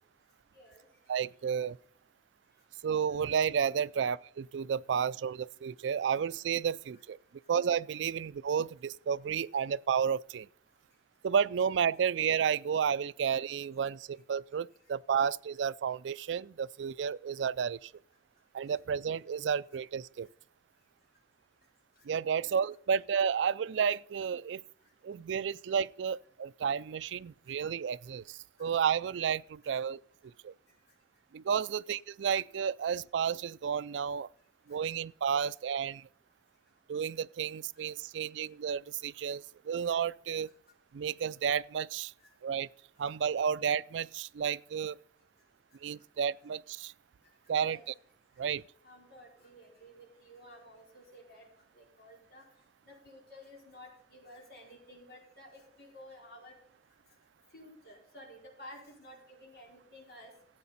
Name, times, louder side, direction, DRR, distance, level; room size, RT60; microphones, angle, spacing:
voice 1, 0.5-0.9 22.0-22.1 22.3-22.5 27.5-27.6 28.6-28.7 31.7-31.8 37.7-37.8 42.2-42.3 47.5-47.8 48.8-51.5 51.7-52.4 52.8-56.5 57.5-60.3, left 1 dB, 60° left, 4.7 m, -53 dB
voice 2, 1.1-1.8 2.8-7.2 7.5-10.5 11.2-17.9 18.5-20.3 22.0-24.6 25.0-30.0 30.4-30.5 31.3-34.3 34.7-36.1 36.9-40.5 40.9-42.1 42.4-42.7 43.0-45.0 45.8-46.9 47.5-47.9 48.4-48.6, right 7 dB, 90° right, 0.4 m, -32 dB
15.0 x 8.3 x 4.1 m
head